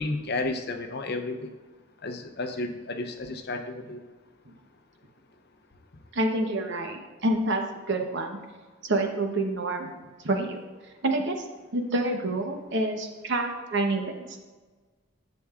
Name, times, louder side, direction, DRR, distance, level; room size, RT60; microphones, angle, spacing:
voice 1, 0.0-1.5 2.0-4.0, left 2 dB, 50° left, 6 dB, 0.7 m, -32 dB
voice 2, 6.1-7.6 7.9-8.4 8.8-9.9 10.2-10.6 11.0-11.5 11.7-14.4, right 2 dB, 55° right, 4 dB, 0.9 m, -27 dB
10.5 x 7.2 x 2.4 m, 1.3 s
head